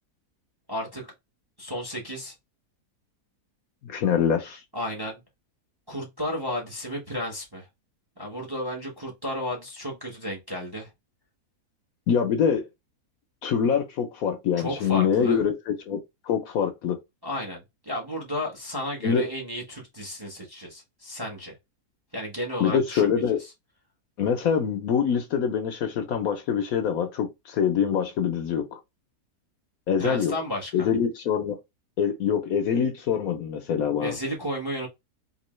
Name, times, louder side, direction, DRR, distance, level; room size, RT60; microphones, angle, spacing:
voice 1, 0.7-1.1 1.6-2.3 4.7-5.2 5.9-7.7 8.2-10.9 14.6-15.4 17.2-21.6 22.1-23.2 30.0-30.9 34.0-34.9, equal, 20° right, 0.8 m, -33 dB
voice 2, 3.8-4.6 12.1-12.7 13.4-16.0 16.2-17.0 19.0-19.2 22.6-23.4 24.2-28.8 29.9-30.3 30.7-31.6 32.0-34.1, left 7 dB, 70° left, 1.0 m, -24 dB
3.7 x 2.8 x 3.1 m
omnidirectional pair, 1.8 m